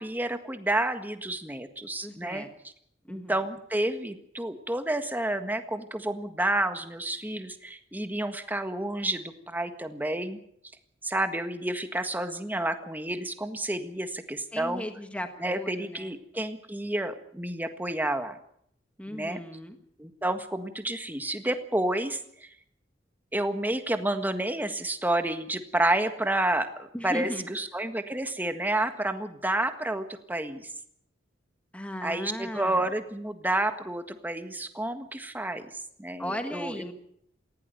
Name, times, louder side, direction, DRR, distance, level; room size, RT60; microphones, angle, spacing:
voice 1, 0.0-2.4 3.1-10.4 11.0-14.8 15.4-18.4 19.1-19.4 20.0-22.5 23.3-30.7 32.0-36.9, right 1 dB, 10° right, 8 dB, 1.6 m, -30 dB
voice 2, 2.0-2.5 3.1-3.4 14.5-16.2 19.0-19.8 26.9-27.5 31.7-32.9 36.2-36.9, equal, 5° left, 6 dB, 1.5 m, -36 dB
19.0 x 16.0 x 9.3 m, 0.69 s
head